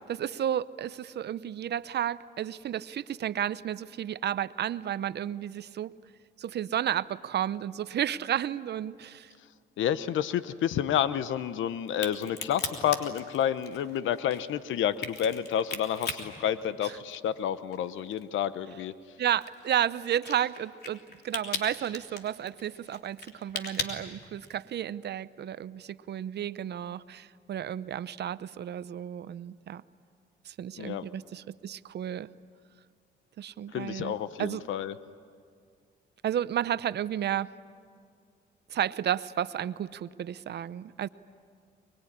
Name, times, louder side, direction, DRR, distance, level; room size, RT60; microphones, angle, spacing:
voice 1, 0.1-5.9 6.4-9.3 16.8-17.0 19.2-29.8 30.4-32.3 33.4-34.1 34.4-34.6 36.2-37.5 38.7-41.1, right 10 dB, 55° right, 16 dB, 0.7 m, -32 dB
voice 2, 9.8-18.9 30.8-31.0 33.7-34.9, left 10 dB, 75° left, 14 dB, 0.9 m, -30 dB
Crack, 11.9-17.4 17.7-24.7, left 4 dB, 55° left, 3.3 m, -38 dB
24.0 x 22.0 x 10.0 m, 2.1 s
cardioid pair, 90°, 20 cm